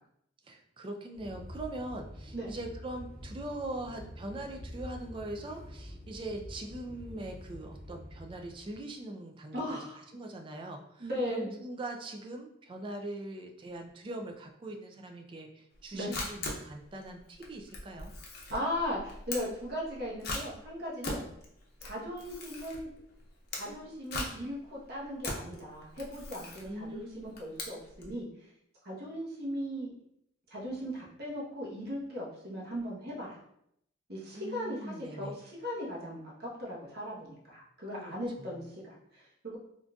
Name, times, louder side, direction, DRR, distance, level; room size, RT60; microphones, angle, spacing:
voice 1, 0.4-9.8 10.1-18.1 26.7-27.2 34.3-35.4 38.0-38.6, right 1 dB, 25° right, 3 dB, 0.3 m, -41 dB
sound 1, 1.1-8.8, equal, 5° left, 0.9 m, -47 dB
voice 2, 9.5-10.0 11.0-11.5 15.9-16.1 18.5-21.3 21.8-22.9 23.5-28.3 28.8-29.9 30.5-33.4 34.1-39.6, equal, 55° right, -4 dB, 0.9 m, -38 dB
Camera, 15.7-28.2, left 2 dB, 55° left, 0.6 m, -41 dB
3.6 x 2.5 x 2.3 m, 0.74 s
head